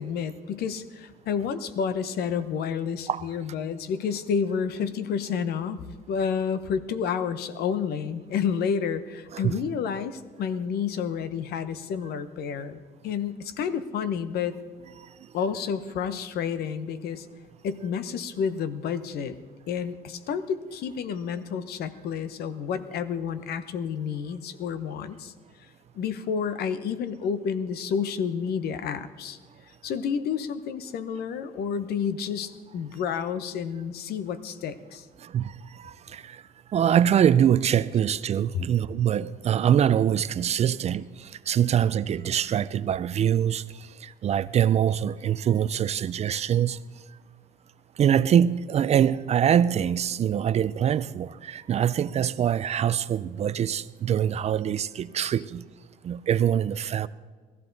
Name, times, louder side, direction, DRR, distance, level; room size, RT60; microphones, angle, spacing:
voice 1, 0.0-5.8 6.1-14.5 15.3-17.3 17.6-19.4 19.7-25.3 25.9-29.4 29.8-35.1 38.5-38.7, left 7 dB, 70° left, 0.9 m, -30 dB
voice 2, 35.2-36.4 36.7-46.8 48.0-55.6 56.0-57.1, right 9 dB, 40° right, 0.4 m, -24 dB
19.0 x 14.0 x 4.0 m
cardioid pair, 110°, 17 cm